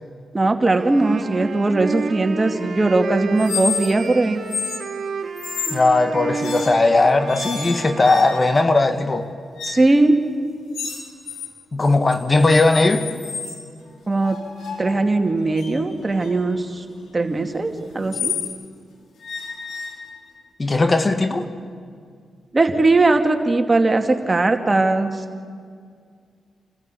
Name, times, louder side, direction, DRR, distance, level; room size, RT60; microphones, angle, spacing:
voice 1, 0.3-4.4 9.6-10.2 14.1-14.4 14.8-16.8 17.1-18.3 22.5-25.2, right 2 dB, 35° right, 5 dB, 2.3 m, -19 dB
Wind instrument woodwind instrument, 0.8-8.7, right 4 dB, 65° right, 2.2 m, -31 dB
sound 1, 3.4-4.1 4.5-4.8 5.4-5.9 6.4-6.9 7.3-8.6 9.6-9.9 10.7-11.5 11.8-13.6 14.2-18.6 19.2-20.4, left 5 dB, 75° left, 2.7 m, -31 dB
voice 2, 5.7-9.3 11.7-13.0 20.6-21.5, left 2 dB, 40° left, 8 dB, 1.6 m, -18 dB
28.5 x 14.0 x 8.5 m, 2.1 s
supercardioid pair, 45°, 0 cm